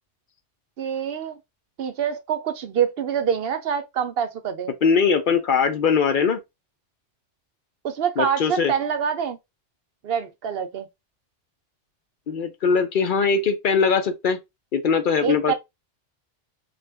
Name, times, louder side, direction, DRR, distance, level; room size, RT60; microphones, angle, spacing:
voice 1, 0.8-1.4 1.8-4.7 7.8-9.4 10.0-10.9 15.2-15.5, right 8 dB, 65° right, 0.7 m, -25 dB
voice 2, 4.8-6.4 8.2-8.7 12.3-14.4 14.7-15.5, left 5 dB, 55° left, 0.7 m, -21 dB
3.7 x 2.4 x 3.3 m
omnidirectional pair, 1.2 m